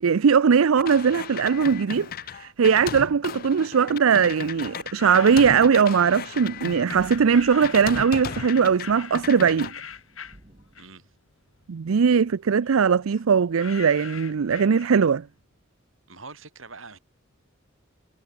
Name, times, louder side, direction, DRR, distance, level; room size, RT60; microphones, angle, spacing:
voice 1, 0.0-9.7 11.7-15.2, right 6 dB, 85° right, 0.5 m, -20 dB
sound 1, 0.8-7.2 7.6-8.9 9.1-9.7, left 8 dB, 45° left, 0.4 m, -35 dB
sound 2, 4.7-6.0 6.9-11.2 11.5-15.3, left 7 dB, 80° left, 6.3 m, -42 dB
sound 3, 6.9-11.3, right 1 dB, 30° right, 2.0 m, -51 dB
voice 2, 10.8-11.1 16.1-17.0, right 4 dB, 70° right, 7.1 m, -44 dB
head